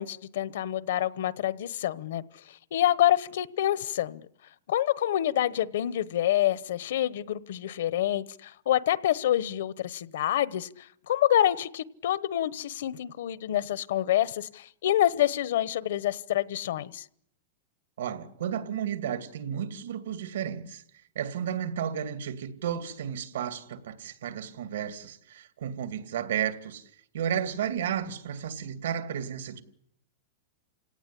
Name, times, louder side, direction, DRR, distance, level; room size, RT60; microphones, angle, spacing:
voice 1, 0.0-2.2 2.5-4.3 4.7-17.0, left 12 dB, 65° left, 1.0 m, -27 dB
voice 2, 18.0-20.8 21.1-29.6, right 9 dB, 80° right, 2.4 m, -33 dB
29.0 x 18.0 x 9.9 m
supercardioid pair, 170°, 0 cm